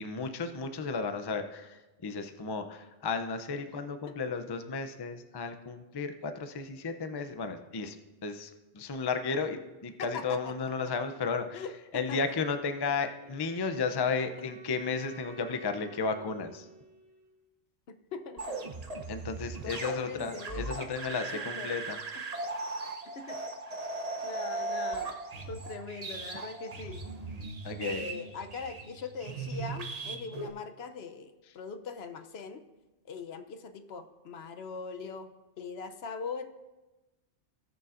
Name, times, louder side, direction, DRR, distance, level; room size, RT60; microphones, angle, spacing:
voice 1, 0.0-8.0 8.2-11.6 11.9-16.7 19.1-22.0 27.6-28.0, left 4 dB, 35° left, 8 dB, 0.4 m, -33 dB
voice 2, 10.0-10.5 11.5-12.4 12.9-13.0 15.8-15.9 17.9-18.6 19.4-20.7 21.3-21.7 22.1-22.2 23.1-23.4 24.2-25.1 25.5-27.0 27.8-32.6 33.0-35.3 35.6-36.4, left 5 dB, 70° left, 9 dB, 0.9 m, -41 dB
Wind instrument woodwind instrument, 13.3-17.4, right 7 dB, 65° right, 2.4 m, -51 dB
sound 1, 18.4-30.5, right 3 dB, 40° right, 0.9 m, -38 dB
18.0 x 6.8 x 2.5 m, 1.1 s
omnidirectional pair, 1.1 m